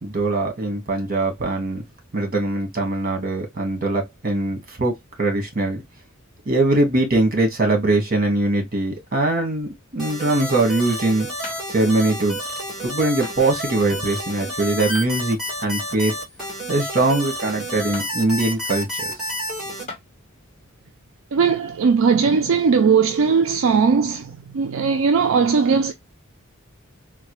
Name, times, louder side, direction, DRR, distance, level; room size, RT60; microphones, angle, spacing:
voice 1, 0.0-1.8 2.1-5.8 6.4-11.3 11.7-12.4 12.8-16.1 16.7-19.2, right 2 dB, 45° right, 1.4 m, -22 dB
sound 1, 10.0-19.8, equal, 5° right, 2.0 m, -30 dB
sound 2, 11.4-11.7 13.2-13.4 14.9-15.1 16.4-16.6 17.9-18.1 19.1-19.2 19.9-20.1 21.5-21.6, left 3 dB, 35° left, 1.1 m, -37 dB
voice 2, 21.3-25.9, right 5 dB, 70° right, 0.4 m, -18 dB
3.8 x 2.2 x 3.0 m
head